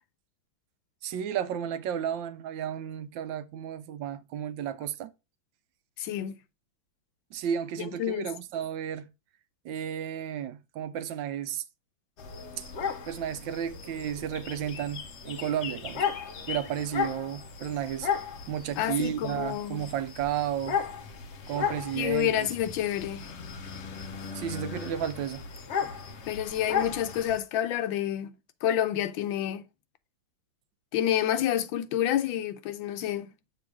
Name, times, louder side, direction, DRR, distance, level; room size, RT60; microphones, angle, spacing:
voice 1, 1.0-5.1 7.3-9.1 9.6-11.6 12.6-12.7 13.1-16.1 16.5-18.1 18.5-20.8 21.5-22.5 24.3-25.5, right 9 dB, 80° right, 1.3 m, -33 dB
voice 2, 6.0-6.3 7.8-8.3 18.8-19.8 21.9-23.3 25.8-25.9 26.3-28.3 28.6-29.6 30.9-33.3, left 11 dB, 90° left, 1.4 m, -29 dB
sound 1, 12.2-27.4, left 7 dB, 65° left, 0.6 m, -35 dB
7.0 x 3.0 x 4.7 m
omnidirectional pair, 2.1 m